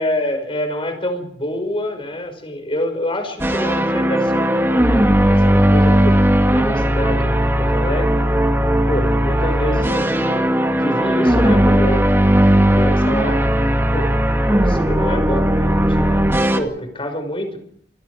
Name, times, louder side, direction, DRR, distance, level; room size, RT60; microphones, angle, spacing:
voice 1, 0.0-6.2 6.5-8.2 8.9-12.1 12.7-13.5 13.9-14.1 14.5-17.6, left 1 dB, 30° left, 7 dB, 5.5 m, -26 dB
sound 1, 3.4-16.6, equal, 15° right, 2.0 m, -16 dB
28.0 x 21.0 x 4.9 m, 0.66 s
head